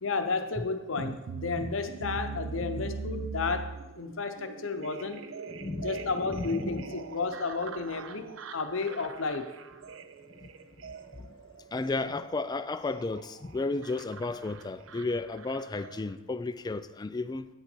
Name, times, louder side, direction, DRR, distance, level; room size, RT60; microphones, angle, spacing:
voice 1, 0.0-5.2 5.8-9.5, left 4 dB, 75° left, 0.8 m, -32 dB
sound 1, 1.0-16.1, right 4 dB, 75° right, 0.5 m, -42 dB
voice 2, 5.5-7.0 10.4-10.5 10.8-11.4 11.7-17.5, left 3 dB, 20° left, 0.3 m, -34 dB
9.0 x 6.9 x 4.5 m
head